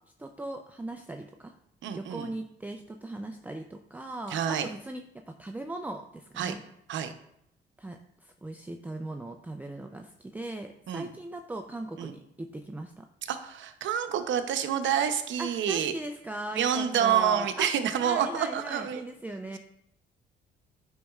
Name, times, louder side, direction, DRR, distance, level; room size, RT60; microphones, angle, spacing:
voice 1, 0.2-1.5 1.9-5.0 5.3-6.6 7.8-13.1 15.4-17.7 18.0-19.6, right 1 dB, 10° right, 5 dB, 0.4 m, -39 dB
voice 2, 1.8-2.3 4.3-4.7 6.4-6.6 6.9-7.1 10.9-11.1 12.0-12.1 13.3-15.9 16.6-19.0, right 9 dB, 75° right, 8 dB, 0.7 m, -28 dB
9.2 x 5.3 x 2.4 m, 0.74 s
cardioid pair, 90°, 20 cm